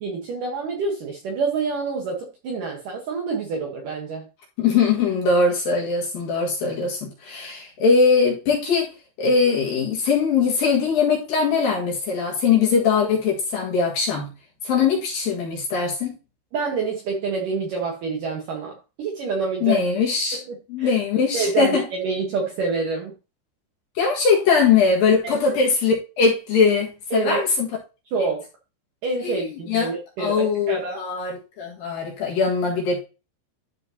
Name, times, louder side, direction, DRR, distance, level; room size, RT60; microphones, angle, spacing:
voice 1, 0.0-4.3 16.5-19.9 20.3-20.9 21.3-23.1 25.2-25.4 27.1-27.4 28.1-28.4 29.0-31.0, right 4 dB, 65° right, 2.2 m, -27 dB
voice 2, 4.6-8.9 9.2-14.3 14.6-16.1 19.6-20.4 20.7-21.8 24.0-27.7 29.2-29.9 30.2-33.0, left 5 dB, 60° left, 3.0 m, -21 dB
12.5 x 5.2 x 2.8 m
omnidirectional pair, 5.4 m